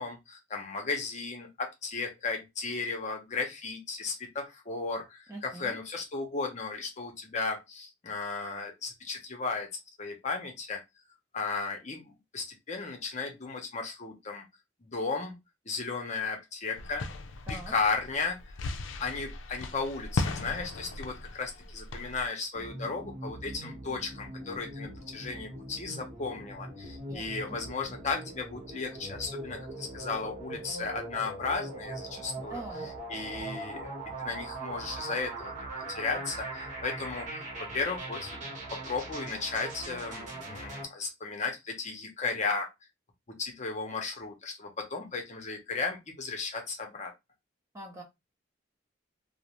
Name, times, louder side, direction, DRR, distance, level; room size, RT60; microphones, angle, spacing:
voice 1, 0.0-9.7 10.0-10.8 11.3-14.5 14.8-15.4 15.7-17.1 17.5-18.4 19.0-32.6 33.1-35.5 35.9-42.7 43.4-47.1, left 4 dB, 40° left, 3 dB, 0.6 m, -35 dB
voice 2, 5.3-5.8 17.5-17.7 27.1-27.6 32.4-32.9 47.7-48.0, right 1 dB, 15° right, 0 dB, 0.6 m, -43 dB
sound 1, 16.8-22.3, left 3 dB, 85° left, 0.4 m, -37 dB
sound 2, 22.5-40.8, right 2 dB, 40° right, 1.0 m, -41 dB
2.5 x 2.0 x 2.9 m, 0.21 s
head